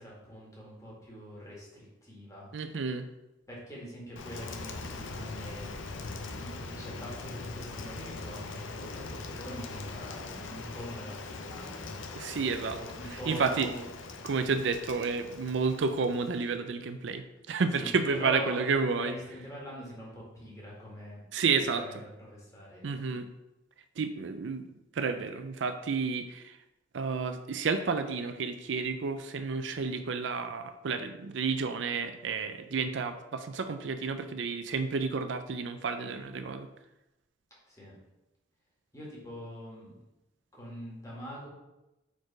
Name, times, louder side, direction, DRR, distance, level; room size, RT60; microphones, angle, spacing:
voice 1, 0.0-2.5 3.5-5.7 6.3-11.9 12.8-13.8 17.8-18.6 18.9-23.0 37.7-38.0 38.9-40.0 40.5-41.5, equal, 15° left, -5 dB, 1.8 m, -44 dB
voice 2, 2.5-3.1 12.1-12.8 13.1-13.7 14.2-19.1 21.3-21.8 22.8-23.3 24.0-24.7 24.9-26.6 26.9-36.7, right 4 dB, 75° right, 9 dB, 0.5 m, -31 dB
Rain, 4.2-16.6, left 3 dB, 85° left, 0.7 m, -41 dB
4.7 x 4.4 x 4.8 m, 0.95 s
head